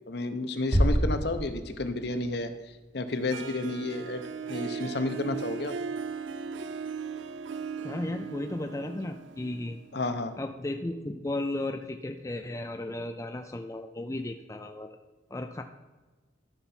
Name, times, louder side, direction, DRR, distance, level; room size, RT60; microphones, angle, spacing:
voice 1, 0.1-2.5 2.9-4.2 4.5-5.8 9.9-10.3, left 2 dB, 55° left, 8 dB, 0.8 m, -31 dB
sound 1, 0.7-2.7, equal, 30° right, 1.3 m, -27 dB
Harp, 3.3-10.2, right 6 dB, 75° right, 0.4 m, -38 dB
voice 2, 7.8-9.8 10.4-15.0 15.3-15.6, left 2 dB, 15° left, 5 dB, 0.4 m, -35 dB
13.5 x 5.7 x 4.3 m, 1.3 s
head